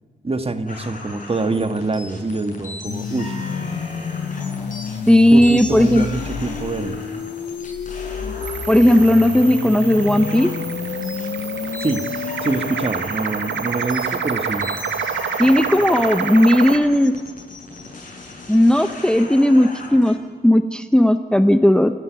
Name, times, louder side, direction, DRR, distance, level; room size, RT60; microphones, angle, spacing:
voice 1, 0.2-3.4 5.3-7.0 11.8-12.0 12.4-14.7, right 3 dB, 30° right, 8 dB, 1.7 m, -25 dB
sound 1, 0.7-20.1, left 2 dB, 45° left, 7.0 m, -37 dB
sound 2, 2.9-12.9, left 6 dB, 70° left, 1.0 m, -30 dB
voice 2, 5.1-6.1 8.7-10.5 15.4-17.1 18.5-20.2 20.4-21.9, left 1 dB, 5° left, 9 dB, 0.9 m, -15 dB
sound 3, 8.4-16.8, right 6 dB, 85° right, 1.7 m, -28 dB
28.5 x 11.0 x 9.6 m, 1.5 s
cardioid pair, 70°, 18 cm